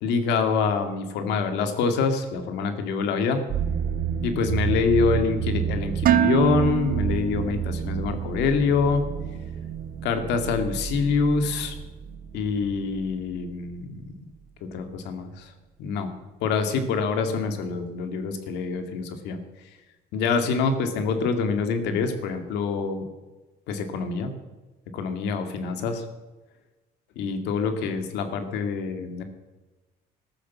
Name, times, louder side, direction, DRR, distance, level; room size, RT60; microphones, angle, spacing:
voice 1, 0.0-3.4 4.2-9.0 10.0-11.8 12.3-14.1 14.7-15.5 15.8-16.1 16.4-19.4 20.1-23.0 23.7-24.3 24.9-26.0 27.2-29.2, left 5 dB, 90° left, 7 dB, 2.1 m, -25 dB
sound 1, 3.5-13.8, right 8 dB, 80° right, 1.8 m, -30 dB
Dishes pots and pans, 6.1-8.1, right 12 dB, 60° right, 0.6 m, -25 dB
14.0 x 12.0 x 7.2 m, 1.2 s
cardioid pair, 110°, 17 cm